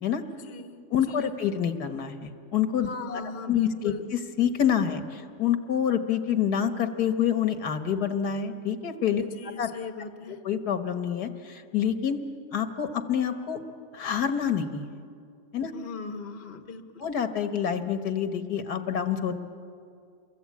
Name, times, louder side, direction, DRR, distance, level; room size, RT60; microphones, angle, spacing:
voice 1, 0.3-0.8 1.1-1.3 2.8-4.1 9.2-10.4 15.7-17.1, left 4 dB, 40° left, 8 dB, 1.4 m, -39 dB
voice 2, 0.9-3.2 3.5-9.2 9.6-9.7 10.3-12.2 12.5-13.6 13.9-14.9 15.5-15.7 17.0-19.4, left 8 dB, 75° left, 8 dB, 1.8 m, -27 dB
28.0 x 23.0 x 8.6 m, 2.4 s
omnidirectional pair, 1.7 m